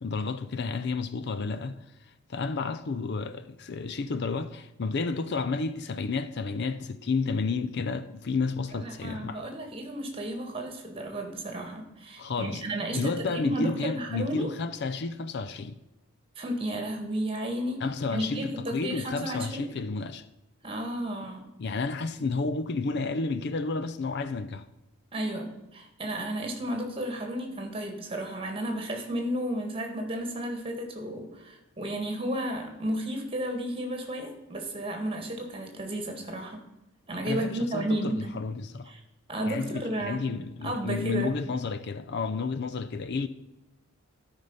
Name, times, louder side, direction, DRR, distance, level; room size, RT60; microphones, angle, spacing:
voice 1, 0.0-9.4 12.2-12.6 12.9-15.8 17.8-20.3 21.6-24.7 37.3-38.9 39.4-43.3, left 4 dB, 50° left, 0.4 m, -31 dB
voice 2, 8.8-14.5 16.4-17.8 18.1-19.6 20.6-21.4 25.1-25.5 25.7-36.6 37.1-38.3 38.9-39.0 39.3-40.2 40.6-41.3, right 1 dB, 25° right, 1.8 m, -33 dB
12.5 x 5.3 x 5.5 m
head